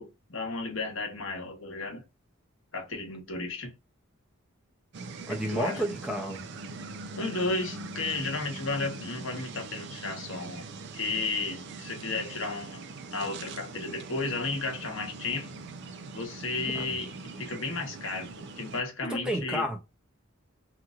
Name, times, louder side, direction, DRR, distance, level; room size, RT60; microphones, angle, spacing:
voice 1, 0.0-2.0 2.7-3.7 5.5-5.8 7.1-12.8 13.1-15.5 16.1-17.1 17.4-19.7, left 3 dB, 70° left, 1.0 m, -33 dB
sound 1, 4.9-18.8, right 3 dB, 55° right, 0.4 m, -42 dB
voice 2, 5.3-6.4 16.7-17.0 19.2-19.8, equal, 5° right, 0.6 m, -31 dB
3.0 x 2.6 x 2.4 m
head